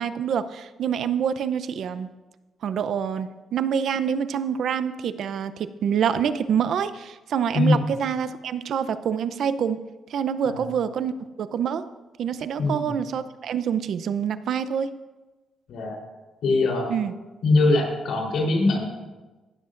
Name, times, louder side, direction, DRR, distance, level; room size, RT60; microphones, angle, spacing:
voice 1, 0.0-2.1 2.6-9.8 10.1-11.1 11.4-11.9 12.2-15.0 16.9-17.1, right 8 dB, 70° right, 13 dB, 0.6 m, -26 dB
voice 2, 7.5-7.9 10.4-10.8 12.6-13.0 15.7-16.0 16.4-16.9 17.4-18.9, left 2 dB, 80° left, -1 dB, 3.7 m, -22 dB
17.0 x 13.0 x 2.5 m, 1.2 s
cardioid pair, 110°, 0 cm